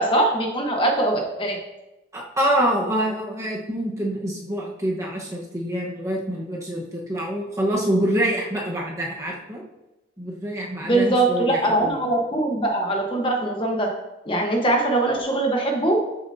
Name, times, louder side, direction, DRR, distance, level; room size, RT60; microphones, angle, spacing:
voice 1, 0.0-1.6 10.8-13.9 14.3-16.0, right 2 dB, 25° left, 1 dB, 1.2 m, -22 dB
voice 2, 2.1-9.6 10.2-12.0, right 1 dB, 15° right, -3 dB, 1.2 m, -26 dB
13.0 x 7.0 x 2.8 m, 0.98 s
head